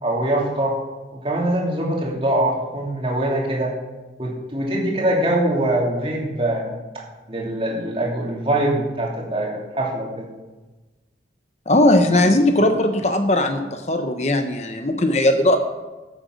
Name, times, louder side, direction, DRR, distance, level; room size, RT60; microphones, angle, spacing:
voice 1, 0.0-0.8 1.2-3.7 4.2-6.7 7.3-10.3 12.1-12.3, right 1 dB, 30° right, -2 dB, 2.9 m, -23 dB
voice 2, 11.7-15.6, left 1 dB, 40° left, 7 dB, 0.8 m, -18 dB
14.5 x 7.8 x 6.3 m, 1.2 s
head